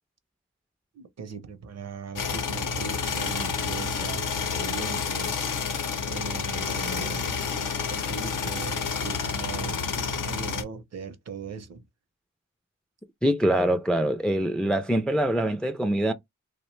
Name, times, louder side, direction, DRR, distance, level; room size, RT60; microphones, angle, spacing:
voice 1, 0.9-7.2 7.9-11.8, right 5 dB, 55° right, 0.6 m, -39 dB
sound 1, 2.1-10.6, left 5 dB, 90° left, 0.7 m, -29 dB
voice 2, 13.2-16.1, right 1 dB, 5° left, 0.3 m, -24 dB
2.7 x 2.1 x 3.1 m
wide cardioid pair, 80°, 31 cm